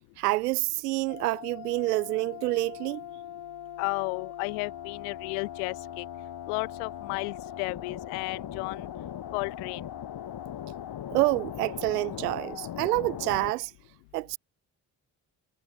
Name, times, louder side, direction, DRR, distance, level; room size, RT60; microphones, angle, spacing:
voice 1, 0.2-3.0 11.1-13.7 14.1-14.4, right 20 dB, 75° right, 2.5 m, -28 dB
sound 1, 1.1-13.5, left 10 dB, 50° left, 5.9 m, -40 dB
voice 2, 3.8-6.0 6.5-8.9 9.3-9.8, left 40 dB or more, 70° left, 2.1 m, -33 dB
figure-of-eight pair, 45°, 47 cm